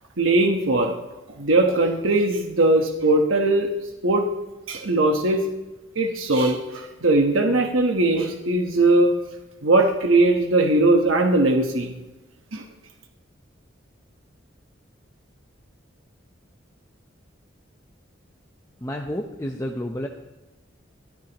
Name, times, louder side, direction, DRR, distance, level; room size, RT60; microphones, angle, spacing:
voice 1, 0.2-0.9 1.4-3.7 4.0-4.3 4.7-5.4 6.0-9.1 9.6-11.9 12.5-12.6, right 2 dB, 85° right, 3 dB, 1.2 m, -20 dB
voice 2, 18.8-20.1, equal, 15° left, 2 dB, 0.7 m, -30 dB
22.0 x 13.0 x 3.0 m, 1.1 s
head